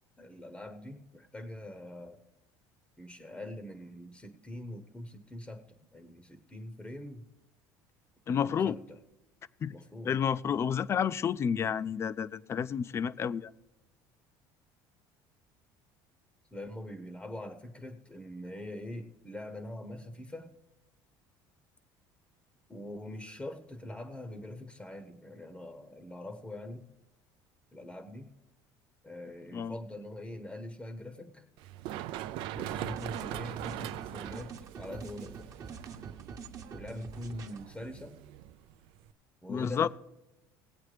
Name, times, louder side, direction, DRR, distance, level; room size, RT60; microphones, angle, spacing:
voice 1, 0.2-2.2 3.0-7.3 8.3-9.0 9.7-10.1 16.5-20.5 22.7-26.9 27.7-28.3 29.0-31.5 32.6-35.6 36.7-38.2 39.4-39.9, left 1 dB, 10° left, 0.8 m, -43 dB
voice 2, 8.3-8.8 9.6-9.8 10.0-13.5 29.5-29.8 39.5-39.9, left 7 dB, 30° left, 0.3 m, -30 dB
Run, 31.6-39.1, right 13 dB, 70° right, 0.4 m, -41 dB
sound 1, 32.5-37.6, right 5 dB, 40° right, 1.0 m, -46 dB
18.5 x 8.2 x 3.3 m
cardioid pair, 115°, 9 cm